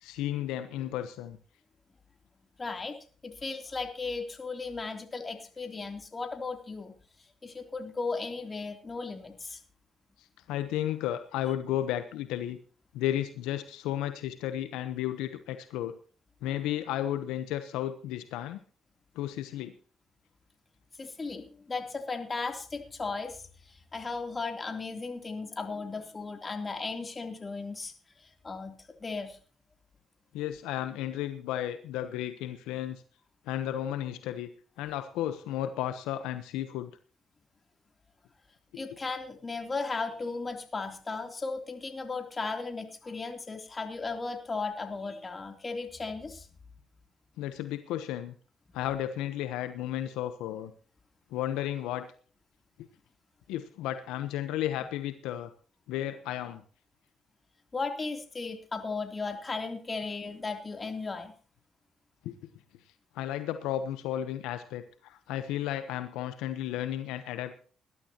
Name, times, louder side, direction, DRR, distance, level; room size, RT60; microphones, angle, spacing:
voice 1, 0.0-1.4 10.2-12.6 12.9-15.9 16.4-18.6 19.1-19.7 30.3-33.0 33.5-34.5 34.8-36.9 38.7-38.8 47.4-48.3 48.7-50.7 51.3-52.1 53.5-55.5 55.9-56.6 62.2-62.3 63.1-67.6, left 12 dB, 85° left, 10 dB, 0.9 m, -33 dB
voice 2, 2.6-3.0 3.2-6.9 7.4-9.6 21.0-27.9 28.2-29.4 38.7-46.5 57.7-61.3, left 4 dB, 30° left, 5 dB, 3.2 m, -36 dB
20.0 x 12.0 x 3.0 m, 0.40 s
supercardioid pair, 60°, 0 cm